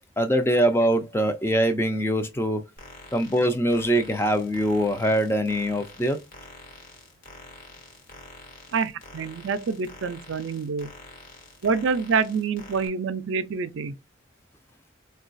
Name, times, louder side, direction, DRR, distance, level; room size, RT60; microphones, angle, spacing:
voice 1, 0.2-2.6 3.1-6.2, equal, 10° left, 0.4 m, -23 dB
sound 1, 2.8-12.9, left 2 dB, 45° left, 1.1 m, -47 dB
voice 2, 8.7-10.9 11.6-14.0, right 5 dB, 75° right, 0.4 m, -27 dB
3.8 x 2.3 x 2.5 m
head